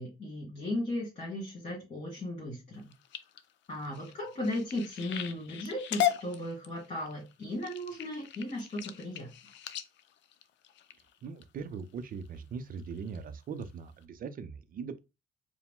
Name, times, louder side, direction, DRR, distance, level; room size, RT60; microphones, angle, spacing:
voice 1, 0.0-2.9 3.7-9.3, left 1 dB, 35° left, 1.8 m, -36 dB
sound 1, 2.7-11.4 12.0-12.4 12.8-13.2 13.6-13.7 14.0-14.1, left 10 dB, 65° left, 0.5 m, -37 dB
voice 2, 11.2-15.0, right 5 dB, 45° right, 0.6 m, -40 dB
4.7 x 2.1 x 3.7 m
cardioid pair, 135°, 20 cm